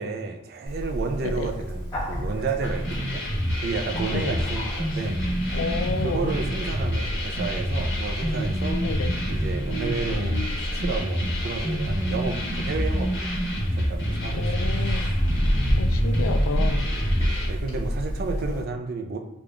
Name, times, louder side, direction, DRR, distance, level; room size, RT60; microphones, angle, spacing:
voice 1, 0.0-3.3 3.6-5.2 6.0-8.8 9.3-13.3 13.7-14.7 17.5-19.2, right 4 dB, 45° right, 5 dB, 0.3 m, -31 dB
Bird, 0.7-18.6, equal, 20° left, 1.1 m, -30 dB
voice 2, 1.2-1.5 4.1-4.4 5.5-6.3 8.8-9.2 9.9-10.5 14.3-15.1 15.8-16.9 18.3-18.7, left 4 dB, 75° left, 7 dB, 0.4 m, -32 dB
sound 1, 2.6-17.5, equal, 55° left, 1.3 m, -28 dB
3.5 x 2.3 x 3.6 m, 0.92 s
head